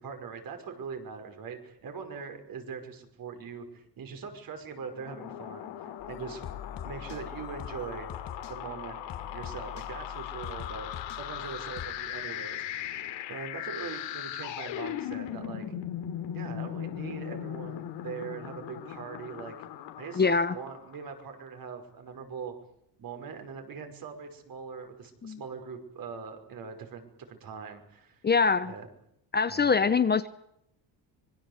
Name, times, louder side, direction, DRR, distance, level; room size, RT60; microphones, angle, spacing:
voice 1, 0.0-6.5 6.8-8.1 8.5-9.0 9.3-10.9 11.2-15.7 16.3-19.5 20.0-20.2 20.5-22.5 23.0-28.2 28.6-28.9 29.5-29.8, right 6 dB, 50° right, 5 dB, 5.5 m, -42 dB
sound 1, 4.9-21.2, left 11 dB, 80° left, 3.5 m, -39 dB
sound 2, 6.0-11.9, left 9 dB, 50° left, 2.3 m, -44 dB
voice 2, 20.2-20.6 25.2-25.4 28.2-28.7 29.3-30.3, left 5 dB, 25° left, 12 dB, 0.9 m, -24 dB
25.5 x 22.5 x 8.1 m, 0.76 s
cardioid pair, 140°, 44 cm